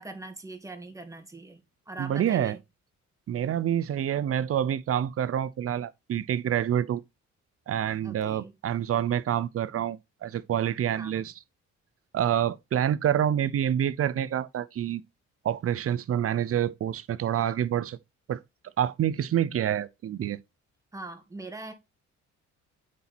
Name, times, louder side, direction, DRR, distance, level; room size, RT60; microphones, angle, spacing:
voice 1, 0.0-1.6 1.9-2.6 8.0-8.5 11.0-11.2 20.9-21.7, right 2 dB, 10° right, 1.7 m, -41 dB
voice 2, 2.0-2.6 3.3-7.0 7.7-11.4 12.1-15.0 15.4-18.0 18.3-18.4 18.8-20.4, right 10 dB, 50° right, 0.6 m, -27 dB
8.2 x 4.3 x 4.3 m
cardioid pair, 90°, 30 cm